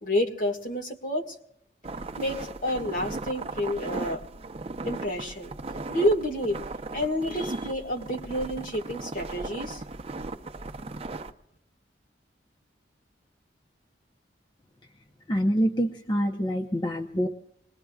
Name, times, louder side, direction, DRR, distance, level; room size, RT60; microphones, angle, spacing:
voice 1, 0.0-1.3 2.2-4.2 4.8-5.5 5.9-6.6 6.9-9.8, equal, 50° left, 4 dB, 1.9 m, -29 dB
sound 1, 1.8-11.3, right 3 dB, 35° right, 0.8 m, -37 dB
voice 2, 15.3-17.3, equal, 25° left, 2 dB, 0.8 m, -26 dB
27.5 x 21.0 x 2.4 m, 0.73 s
head